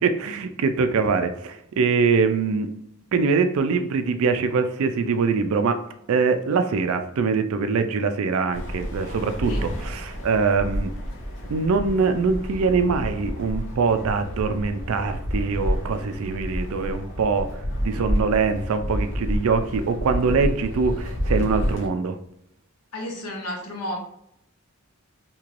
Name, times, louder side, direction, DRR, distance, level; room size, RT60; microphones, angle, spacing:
voice 1, 0.0-2.7 3.1-5.8 6.1-10.9 11.5-17.5 17.8-22.2, right 4 dB, 65° right, 8 dB, 0.4 m, -23 dB
sound 1, 8.5-21.9, equal, 55° left, 0.8 m, -29 dB
voice 2, 22.9-24.0, left 1 dB, 85° left, 1 dB, 0.6 m, -32 dB
3.1 x 2.9 x 2.4 m, 0.74 s
head